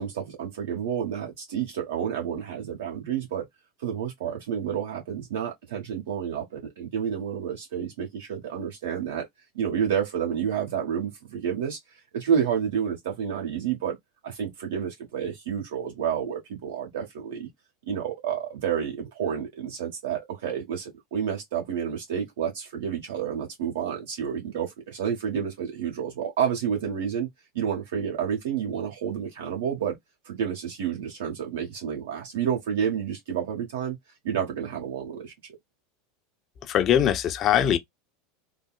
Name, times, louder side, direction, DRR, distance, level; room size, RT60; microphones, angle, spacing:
voice 1, 0.0-3.4 3.8-9.2 9.5-11.8 12.1-14.0 14.2-17.5 17.9-27.3 27.5-30.0 30.2-34.0 34.2-35.5, right 8 dB, 65° right, 1.5 m, -30 dB
voice 2, 36.7-37.8, left 10 dB, 40° left, 0.5 m, -21 dB
3.7 x 2.1 x 2.4 m
figure-of-eight pair, 80°, 0 cm